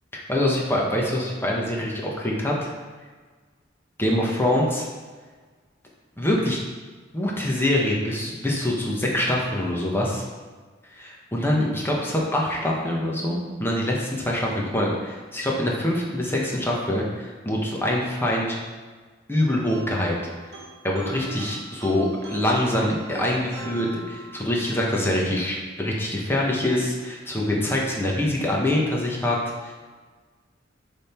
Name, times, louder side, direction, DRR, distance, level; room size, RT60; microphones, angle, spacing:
voice 1, 0.3-2.7 4.0-4.9 6.2-6.6 7.1-10.2 10.9-18.6 19.3-20.1 20.8-29.4 29.6-29.7, left 1 dB, 10° left, -2 dB, 1.1 m, -24 dB
sound 1, 19.7-24.7, right 2 dB, 60° right, 1.1 m, -40 dB
6.3 x 3.6 x 4.4 m, 1.4 s
head